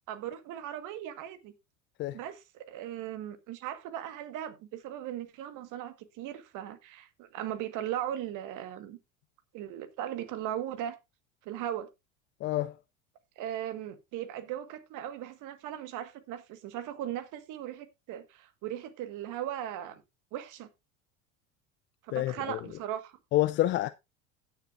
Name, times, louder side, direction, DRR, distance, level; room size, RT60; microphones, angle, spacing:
voice 1, 0.1-1.5 2.1-9.0 9.5-11.0 11.4-11.9 13.4-20.0 20.3-20.7 22.0-23.2, right 11 dB, 50° right, 1.6 m, -38 dB
voice 2, 12.4-12.7 22.1-22.6 23.3-23.9, left 16 dB, 30° left, 0.4 m, -28 dB
16.5 x 6.6 x 2.5 m
hypercardioid pair, 75°, 40 cm